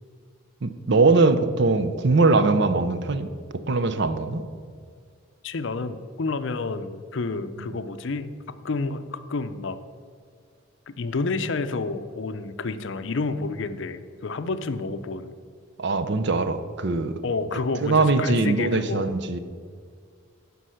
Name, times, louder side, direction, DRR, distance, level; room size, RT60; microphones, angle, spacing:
voice 1, 0.6-3.3 3.7-4.4 15.8-17.2 17.8-19.4, right 3 dB, 55° right, 11 dB, 0.6 m, -21 dB
voice 2, 5.4-8.3 8.6-9.8 10.9-15.3 17.2-19.1, left 3 dB, 60° left, 11 dB, 0.5 m, -29 dB
9.9 x 5.4 x 6.3 m, 2.1 s
head